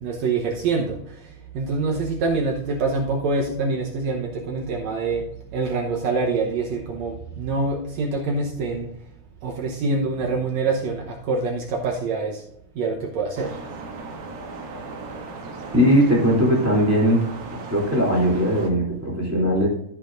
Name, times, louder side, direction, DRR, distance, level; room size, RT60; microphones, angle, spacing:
voice 1, 0.0-1.0 1.5-5.3 5.5-8.9 9.4-12.4 12.8-13.5, right 3 dB, 70° right, -1 dB, 2.2 m, -25 dB
sound 1, 13.4-18.7, right 3 dB, 90° right, 2.9 m, -37 dB
voice 2, 15.7-17.3 17.7-19.7, equal, 5° right, -4 dB, 2.5 m, -19 dB
13.5 x 7.4 x 2.5 m, 0.76 s
omnidirectional pair, 3.3 m